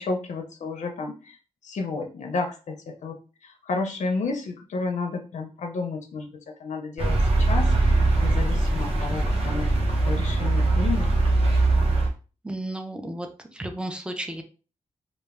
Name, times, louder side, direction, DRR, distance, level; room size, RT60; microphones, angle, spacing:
voice 1, 0.0-1.4 1.6-3.2 3.4-11.1, left 3 dB, 65° left, 3 dB, 0.4 m, -31 dB
sound 1, 7.0-12.1, right 2 dB, 45° right, 0.7 m, -21 dB
voice 2, 12.4-14.4, right 1 dB, 5° right, 6 dB, 0.4 m, -33 dB
2.1 x 2.1 x 3.4 m, 0.35 s
wide cardioid pair, 125°, 13 cm